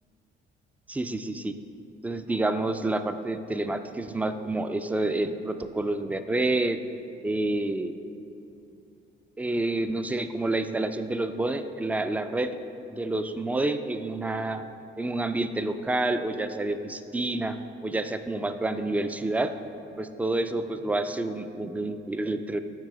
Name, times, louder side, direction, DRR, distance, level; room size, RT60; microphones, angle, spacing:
voice 1, 0.9-1.5 2.0-6.8 7.2-7.9 9.4-12.5 12.9-14.6 15.0-17.5 17.8-19.5 20.0-22.6, right 2 dB, 5° right, 9 dB, 0.3 m, -28 dB
7.5 x 4.8 x 4.7 m, 2.8 s
cardioid pair, 90°, 20 cm